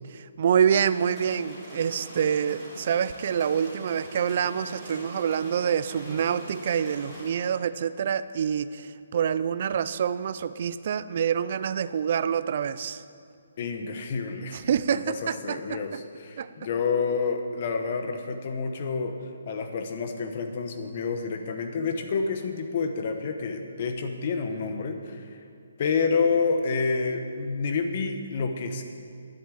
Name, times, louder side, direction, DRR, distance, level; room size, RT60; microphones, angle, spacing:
voice 1, 0.1-13.0 14.5-16.0 16.4-16.5, right 8 dB, 35° right, 14 dB, 0.4 m, -26 dB
sound 1, 0.8-7.3, equal, 5° left, 3.5 m, -42 dB
voice 2, 13.6-14.6 14.9-19.2 19.5-25.4 25.8-28.8, left 5 dB, 35° left, 6 dB, 1.0 m, -29 dB
10.5 x 8.4 x 7.6 m, 2.3 s
hypercardioid pair, 170°, 0 cm